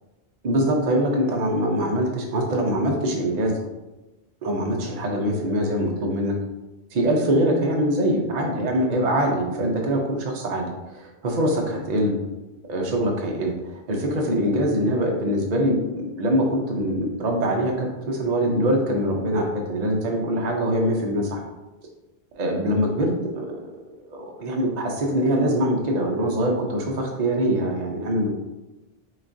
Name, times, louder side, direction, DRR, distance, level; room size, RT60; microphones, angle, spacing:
voice 1, 0.4-3.6 4.4-6.4 6.9-12.1 12.7-21.4 22.3-23.7 24.1-28.3, equal, 50° right, 0 dB, 0.7 m, -23 dB
6.1 x 2.4 x 2.6 m, 1.0 s
omnidirectional pair, 1.1 m